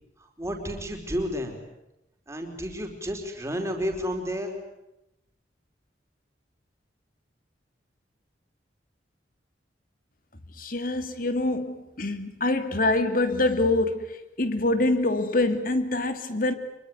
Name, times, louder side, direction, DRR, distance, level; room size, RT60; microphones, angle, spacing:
voice 1, 0.2-1.6 2.3-4.6, equal, 15° right, 3 dB, 4.7 m, -31 dB
voice 2, 10.6-16.5, left 2 dB, 50° left, 9 dB, 2.5 m, -25 dB
25.5 x 23.5 x 9.5 m, 0.93 s
head